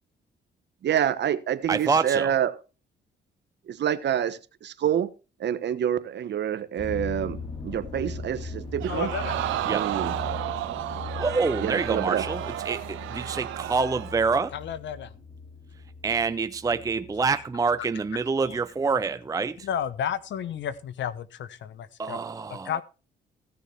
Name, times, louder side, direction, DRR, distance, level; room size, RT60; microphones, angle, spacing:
voice 1, 0.8-2.6 3.7-5.1 5.4-9.1 9.6-10.1 11.6-12.3, right 9 dB, 60° right, 1.1 m, -27 dB
voice 2, 1.7-2.3 9.7-9.8 11.2-14.5 16.0-19.7 22.0-22.8, right 4 dB, 15° right, 0.5 m, -26 dB
sound 1, 6.8-19.0 19.6-20.0 20.6-20.7 21.0-21.1, left 3 dB, 25° left, 6.4 m, -39 dB
Crowd, 8.8-14.3 14.7-14.8, right 13 dB, 90° right, 1.0 m, -32 dB
voice 3, 8.9-9.4 14.5-15.1 17.3-17.4 18.4-18.6 19.6-22.2 22.5-22.8, left 9 dB, 70° left, 1.0 m, -32 dB
15.5 x 6.9 x 4.3 m
cardioid pair, 90°, 20 cm